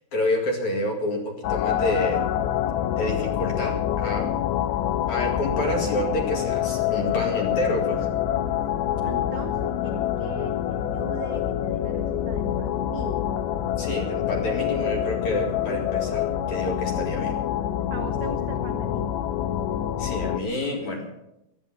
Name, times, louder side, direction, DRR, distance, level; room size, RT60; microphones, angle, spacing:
voice 1, 0.1-2.3 3.0-4.3 5.1-8.1 13.8-17.4 20.0-21.1, left 1 dB, 50° left, 1 dB, 3.2 m, -28 dB
sound 1, 1.4-20.4, left 11 dB, 85° left, 2.9 m, -26 dB
voice 2, 9.0-13.2 17.9-19.2, right 7 dB, 75° right, 5 dB, 1.8 m, -39 dB
16.5 x 13.0 x 5.8 m, 0.82 s
omnidirectional pair, 5.0 m